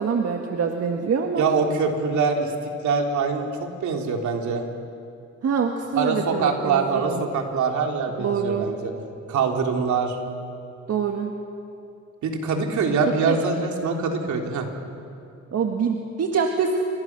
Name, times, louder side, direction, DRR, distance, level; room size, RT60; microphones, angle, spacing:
voice 1, 0.0-1.5 5.4-7.2 8.2-8.7 10.9-11.4 13.2-13.4 15.5-16.8, right 6 dB, 55° right, 2 dB, 1.9 m, -25 dB
voice 2, 1.4-2.5 2.8-4.7 5.9-8.9 9.3-10.2 12.2-14.7, right 5 dB, 70° right, 2 dB, 3.6 m, -24 dB
28.5 x 24.5 x 6.2 m, 2.6 s
cardioid pair, 90°, 30 cm